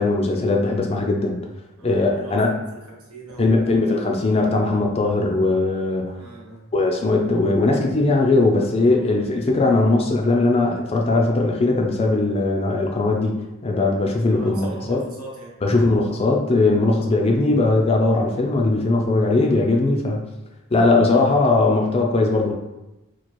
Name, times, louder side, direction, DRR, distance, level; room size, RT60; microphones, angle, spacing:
voice 1, 0.0-1.4 1.8-2.5 3.4-6.1 6.7-13.4 13.6-15.0 15.6-20.2 20.7-22.5, left 2 dB, 30° left, 1 dB, 0.4 m, -19 dB
voice 2, 1.8-3.6 6.2-6.7 9.0-9.3 14.3-15.5 19.3-19.4 21.0-21.3, right 2 dB, 85° right, -2 dB, 1.0 m, -40 dB
3.0 x 2.3 x 4.2 m, 0.97 s
head